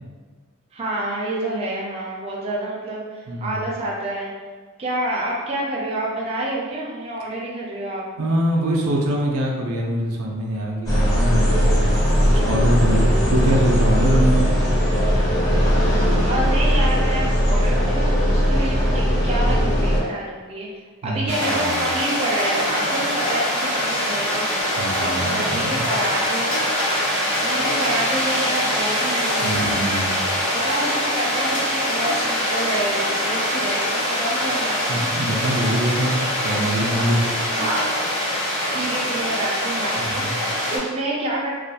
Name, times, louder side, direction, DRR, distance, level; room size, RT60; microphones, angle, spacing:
voice 1, 0.7-4.3 4.8-8.1 16.3-20.7 21.0-26.5 27.3-30.1 30.5-35.1 37.5-37.9 38.7-41.5, right 1 dB, 30° right, -5 dB, 0.4 m, -28 dB
voice 2, 3.3-3.6 8.2-14.5 21.0-21.8 24.8-25.9 29.4-30.3 34.9-37.3 40.0-40.4, right 1 dB, 90° right, -1 dB, 0.4 m, -23 dB
sound 1, 10.9-20.0, equal, 15° left, 0.6 m, -19 dB
sound 2, 21.3-40.8, equal, 90° left, 1.1 m, -23 dB
2.4 x 2.2 x 2.7 m, 1.4 s
head